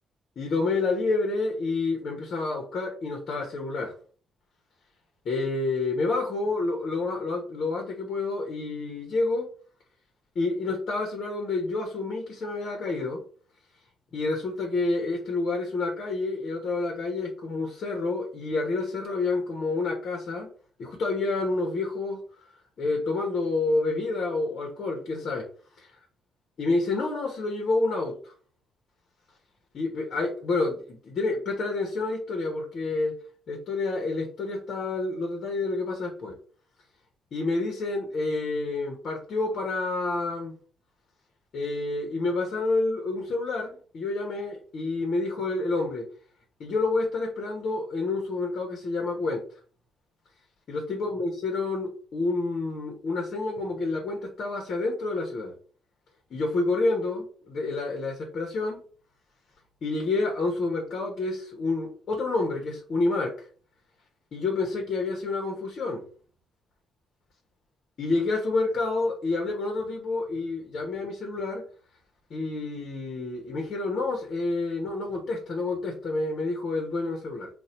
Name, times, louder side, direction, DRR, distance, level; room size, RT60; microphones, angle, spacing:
voice 1, 0.4-3.9 5.2-9.5 10.3-13.2 14.1-20.5 20.8-22.2 22.8-25.5 25.8-25.9 26.6-28.3 29.7-33.2 33.5-36.4 37.3-40.5 41.5-46.1 46.6-49.4 50.7-55.5 56.3-58.8 59.8-63.5 64.3-66.0 68.0-71.6 72.3-77.5, left 3 dB, 60° left, 1 dB, 1.2 m, -28 dB
4.2 x 2.6 x 3.9 m, 0.42 s
hypercardioid pair, 45°, 0 cm